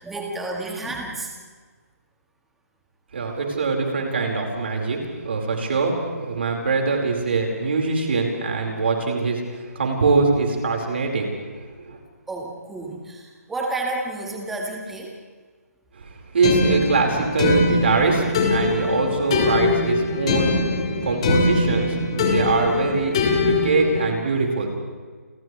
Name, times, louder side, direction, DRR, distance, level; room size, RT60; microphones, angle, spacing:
voice 1, 0.0-1.3 12.3-15.1, right 2 dB, 5° right, -1 dB, 1.7 m, -30 dB
voice 2, 3.1-9.5 9.7-11.3 11.9-12.0 16.0-20.6 21.0-24.7, right 4 dB, 40° right, 1 dB, 4.9 m, -23 dB
sound 1, 16.4-24.1, left 3 dB, 20° left, 1.9 m, -22 dB
29.0 x 27.0 x 3.4 m, 1.5 s
hypercardioid pair, 180°, 9 cm